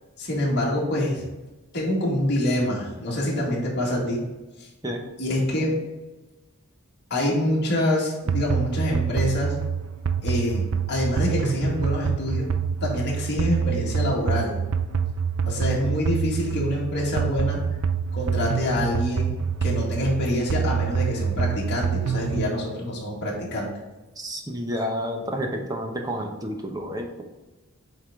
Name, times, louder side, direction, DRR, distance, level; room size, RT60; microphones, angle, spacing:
voice 1, 0.2-1.2 1.7-4.2 4.6-4.7 5.2-5.8 7.1-9.5 10.2-12.5 12.8-14.6 15.5-17.6 18.1-23.7, left 1 dB, 50° left, -3 dB, 1.8 m, -26 dB
sound 1, 8.3-22.5, right 6 dB, 70° right, 0.4 m, -26 dB
voice 2, 24.2-27.2, equal, 15° right, 2 dB, 0.8 m, -30 dB
7.8 x 3.7 x 3.6 m, 1.1 s
head